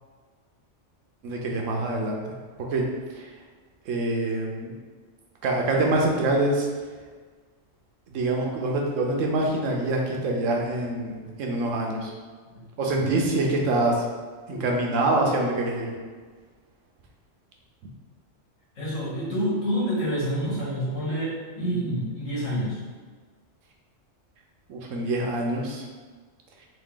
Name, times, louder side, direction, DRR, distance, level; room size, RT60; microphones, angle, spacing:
voice 1, 1.2-2.2 2.7-2.8 3.1-3.3 3.9-4.7 5.4-6.7 8.1-12.1 12.8-14.0 14.5-15.9 24.7-25.8, right 2 dB, 80° right, 0 dB, 1.1 m, -25 dB
voice 2, 18.8-22.8, equal, 80° left, -7 dB, 1.8 m, -28 dB
3.9 x 2.7 x 3.7 m, 1.5 s
omnidirectional pair, 1.3 m